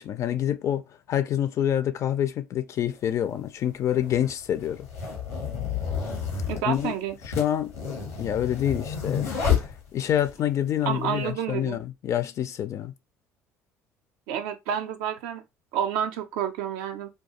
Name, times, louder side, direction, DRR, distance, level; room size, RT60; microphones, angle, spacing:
voice 1, 0.0-4.9 6.7-6.9 7.4-7.7 8.2-9.3 9.6-12.9, left 10 dB, 45° left, 0.4 m, -27 dB
sound 1, 2.9-3.0 3.9-10.3, left 7 dB, 85° left, 0.8 m, -30 dB
voice 2, 6.5-7.2 10.9-11.8 14.3-15.4 15.7-17.1, right 9 dB, 65° right, 0.4 m, -29 dB
2.3 x 2.2 x 2.7 m
figure-of-eight pair, 55°, 7 cm